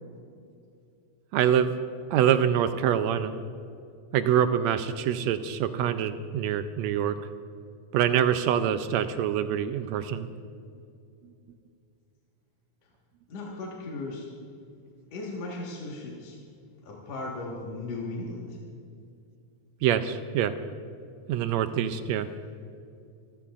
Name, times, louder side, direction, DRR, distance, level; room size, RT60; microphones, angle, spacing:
voice 1, 1.3-1.7 2.1-3.4 4.1-7.2 7.9-10.3 11.2-11.3 19.8-20.5 21.3-22.3, right 9 dB, 80° right, 10 dB, 1.7 m, -25 dB
voice 2, 13.3-14.3 15.1-16.4 16.8-18.6, left 2 dB, 60° left, -3 dB, 2.7 m, -36 dB
27.0 x 14.0 x 2.5 m, 2.5 s
omnidirectional pair, 3.4 m